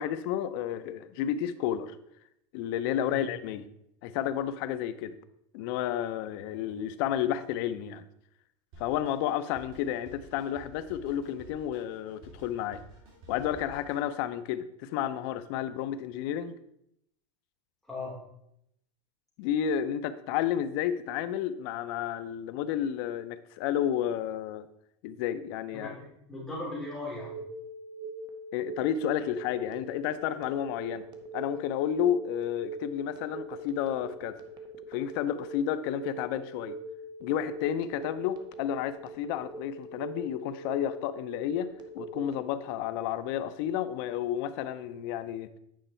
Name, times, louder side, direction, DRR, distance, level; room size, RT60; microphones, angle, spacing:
voice 1, 0.0-1.9 2.5-3.7 4.0-5.2 5.5-8.0 8.8-12.8 13.3-16.6 19.4-24.7 25.0-26.0 28.5-31.0 31.3-34.4 34.9-36.8 37.2-41.7 41.9-45.5, left 10 dB, 50° left, 11 dB, 0.6 m, -31 dB
Drum kit, 8.7-14.1, right 1 dB, 55° right, 3.5 m, -52 dB
voice 2, 25.8-27.3, left 2 dB, ahead, -7 dB, 3.1 m, -38 dB
Telephone, 27.1-42.4, right 3 dB, 25° right, 0.9 m, -42 dB
9.3 x 5.4 x 4.3 m, 0.77 s
supercardioid pair, 165°, 16 cm